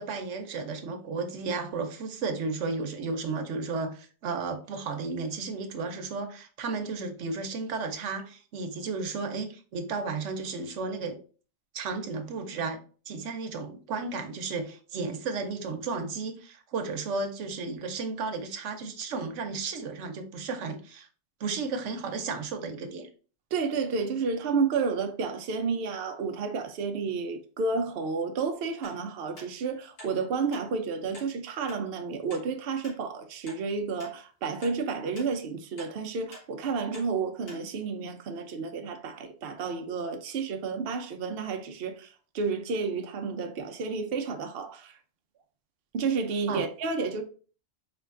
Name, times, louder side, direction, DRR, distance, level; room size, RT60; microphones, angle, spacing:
voice 1, 0.0-11.2 11.7-12.8 13.1-21.1 21.4-23.1 46.5-46.6, right 4 dB, 85° right, 1.0 m, -33 dB
voice 2, 23.5-42.1 42.3-44.9 45.9-47.2, right 4 dB, 60° right, 0.8 m, -31 dB
sound 1, 28.8-29.0 29.4-29.5 30.0-30.1 30.5-30.7 31.1-31.3 31.7-31.8 32.3-32.4 32.8-33.0 33.5-33.6 34.0-34.1 34.6-34.8 35.1-35.3 35.8-35.9 36.3-36.5 36.9-37.1 37.5-37.6 38.1-38.2, equal, 55° left, 1.8 m, -47 dB
4.5 x 3.4 x 2.4 m
omnidirectional pair, 1.2 m